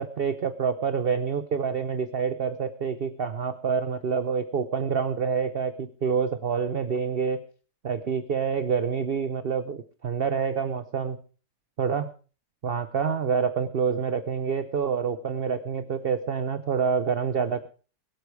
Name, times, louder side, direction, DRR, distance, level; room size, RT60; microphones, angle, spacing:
voice 1, 0.0-7.4 7.8-9.8 10.0-11.2 11.8-12.1 12.6-17.7, right 6 dB, 45° right, 11 dB, 0.8 m, -27 dB
22.0 x 8.3 x 4.7 m, 0.37 s
omnidirectional pair, 1.8 m